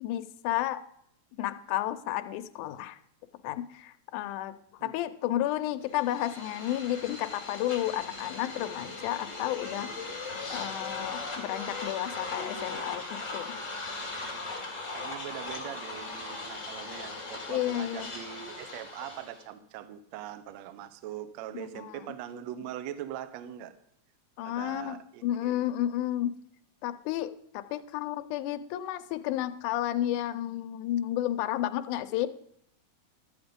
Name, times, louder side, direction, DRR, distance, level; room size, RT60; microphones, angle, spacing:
voice 1, 0.0-0.8 1.4-3.0 3.4-4.5 4.8-9.9 10.5-13.5 17.5-18.1 21.9-22.0 24.4-25.0 25.2-26.3 26.8-32.3, left 13 dB, 90° left, 9 dB, 2.1 m, -32 dB
sound 1, 5.9-19.4, left 3 dB, 30° left, 2.0 m, -39 dB
voice 2, 14.9-23.7 24.5-25.6, right 11 dB, 75° right, 11 dB, 1.8 m, -41 dB
12.5 x 7.9 x 5.2 m, 0.74 s
omnidirectional pair, 3.5 m